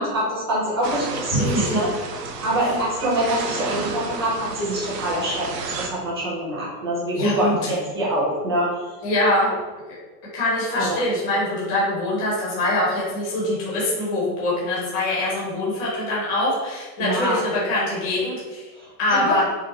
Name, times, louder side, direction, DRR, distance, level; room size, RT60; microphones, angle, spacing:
voice 1, 0.0-1.9 2.4-8.9 10.7-11.0 17.0-17.4 18.8-19.4, right 1 dB, 15° right, -7 dB, 0.5 m, -25 dB
sound 1, 0.8-5.9, right 4 dB, 80° right, 1.0 m, -32 dB
voice 2, 1.3-1.8 7.1-7.7 9.0-9.5 10.3-18.7 19.0-19.4, left 1 dB, 20° left, -7 dB, 1.0 m, -23 dB
4.7 x 2.4 x 4.1 m, 1.3 s
supercardioid pair, 180°, 49 cm